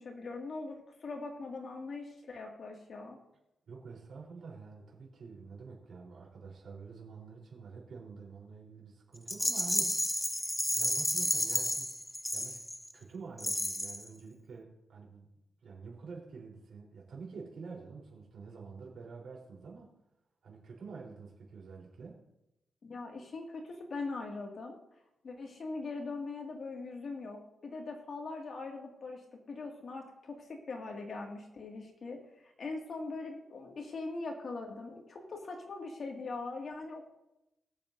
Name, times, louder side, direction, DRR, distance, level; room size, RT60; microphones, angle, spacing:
voice 1, 0.0-3.2 22.8-24.8 25.2-37.1, left 3 dB, 50° left, 1 dB, 2.1 m, -41 dB
voice 2, 3.7-10.4 10.7-11.9 12.3-12.6 12.9-15.3 15.6-19.9 20.4-22.2, right 4 dB, 65° right, -2 dB, 3.7 m, -48 dB
Rattle, 9.3-12.9 13.4-14.1, left 1 dB, 5° left, 0.6 m, -32 dB
21.5 x 7.3 x 2.7 m, 0.89 s
cardioid pair, 95°, 0 cm